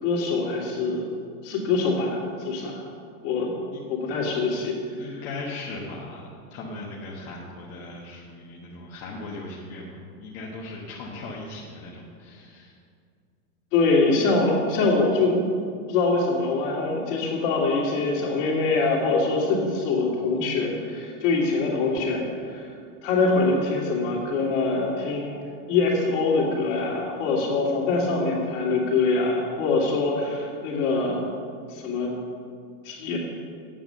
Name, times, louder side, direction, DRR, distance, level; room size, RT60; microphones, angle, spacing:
voice 1, 0.0-1.1 1.4-2.8 3.2-3.5 3.9-5.2 13.7-15.4 15.9-22.7 23.0-25.4 25.7-31.2 31.7-32.1 32.8-33.2, left 3 dB, 50° left, -2 dB, 2.8 m, -24 dB
voice 2, 5.0-12.7, left 2 dB, 35° left, -4 dB, 1.3 m, -38 dB
9.0 x 7.2 x 6.9 m, 2.2 s
supercardioid pair, 155°, 46 cm